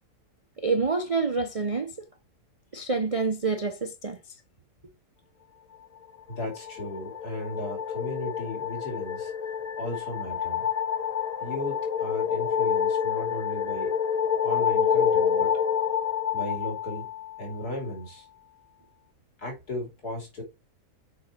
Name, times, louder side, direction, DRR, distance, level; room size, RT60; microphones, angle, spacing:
voice 1, 0.6-2.1 2.7-4.2, right 4 dB, 40° right, 0.5 m, -27 dB
voice 2, 6.3-9.3 9.8-10.7 11.4-13.9 14.4-15.6 16.3-17.1 17.4-18.3 19.4-20.4, left 1 dB, 70° left, 3.3 m, -36 dB
sound 1, 6.3-17.7, left 8 dB, 35° left, 0.7 m, -28 dB
6.1 x 4.9 x 4.3 m
omnidirectional pair, 1.7 m